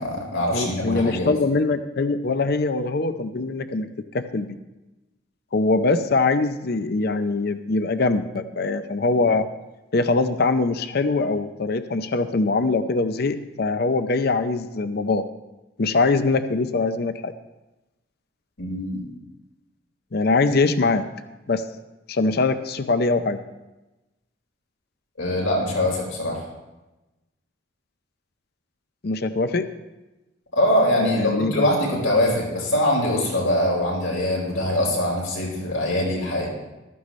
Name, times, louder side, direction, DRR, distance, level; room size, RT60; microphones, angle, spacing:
voice 1, 0.0-1.3 18.6-19.1 25.2-26.4 30.5-36.5, left 1 dB, 85° left, -3 dB, 4.6 m, -23 dB
voice 2, 0.5-3.9 4.1-4.5 5.5-9.4 9.9-15.2 15.8-17.3 20.1-21.1 21.5-21.6 22.1-23.4 29.0-29.7 31.0-31.7, left 3 dB, 50° left, 10 dB, 0.6 m, -22 dB
15.0 x 13.0 x 3.2 m, 1.0 s
head